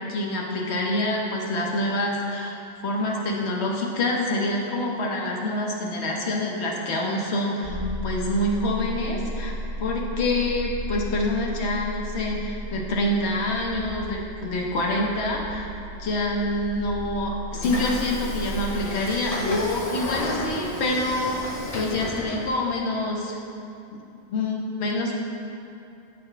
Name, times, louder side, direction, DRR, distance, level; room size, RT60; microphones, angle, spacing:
voice 1, 0.1-2.5 2.8-9.5 9.8-15.7 16.0-23.4 23.9-24.0 24.3-25.1, left 1 dB, 85° left, -1 dB, 1.1 m, -26 dB
sound 1, 7.6-19.7, equal, 50° right, 1.2 m, -35 dB
Train / Sliding door, 17.5-22.6, left 2 dB, 40° left, 0.7 m, -33 dB
8.7 x 4.2 x 3.2 m, 2.8 s
omnidirectional pair, 1.1 m